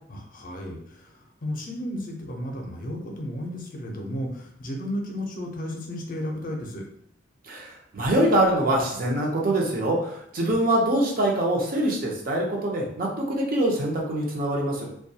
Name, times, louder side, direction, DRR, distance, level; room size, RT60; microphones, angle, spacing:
voice 1, 0.1-6.8, equal, 45° left, 1 dB, 0.5 m, -33 dB
voice 2, 7.4-14.9, right 1 dB, 50° right, -1 dB, 0.6 m, -24 dB
2.3 x 2.2 x 2.7 m, 0.69 s
head